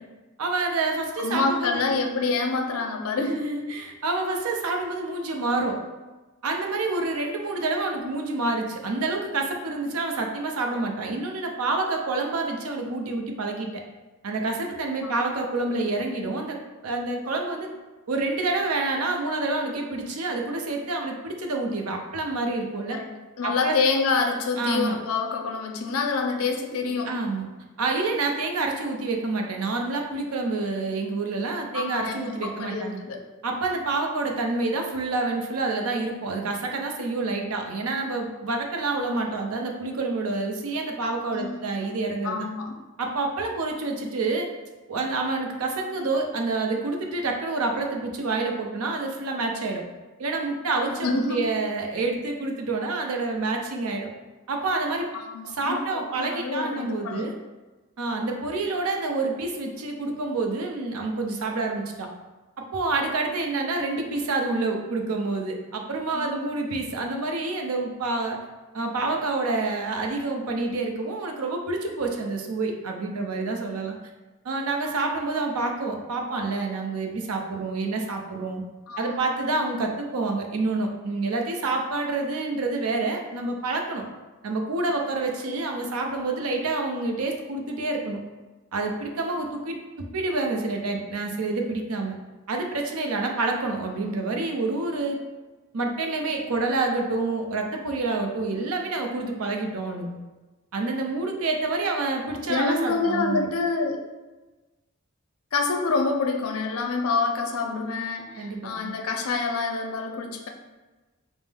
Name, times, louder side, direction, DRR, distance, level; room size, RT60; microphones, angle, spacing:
voice 1, 0.4-1.9 3.2-5.8 6.4-13.8 14.2-16.6 16.8-17.7 18.1-23.0 23.4-23.8 24.6-25.0 27.0-27.5 27.8-33.0 33.4-42.5 43.0-44.5 44.9-49.8 50.2-54.1 54.5-55.1 55.5-57.3 58.0-62.1 62.6-68.4 68.7-74.0 74.4-78.6 79.0-84.0 84.4-88.2 88.7-92.2 92.5-95.2 95.7-100.1 100.7-103.5 108.4-108.9, right 3 dB, 80° right, 3 dB, 0.6 m, -28 dB
voice 2, 1.2-3.4 15.0-15.2 22.9-23.1 23.4-27.2 31.7-33.2 41.3-42.0 42.2-42.7 51.0-51.4 55.1-55.8 56.1-57.2 66.1-66.5 78.9-79.3 102.5-104.0 105.5-110.5, left 4 dB, 80° left, 3 dB, 0.5 m, -27 dB
5.3 x 2.0 x 3.3 m, 1.2 s
head